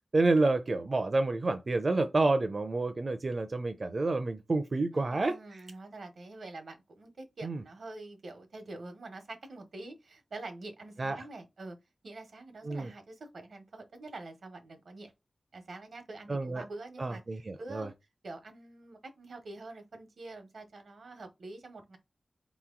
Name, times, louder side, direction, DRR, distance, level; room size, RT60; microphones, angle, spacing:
voice 1, 0.1-5.4 7.4-7.6 11.0-11.2 12.6-12.9 16.3-16.6 17.0-17.9, right 2 dB, 55° right, 0.6 m, -29 dB
voice 2, 4.9-11.8 12.0-15.1 15.5-17.2 17.6-17.9 18.2-22.0, right 2 dB, 85° right, 1.1 m, -46 dB
3.8 x 3.0 x 3.7 m
cardioid pair, 40°, 0 cm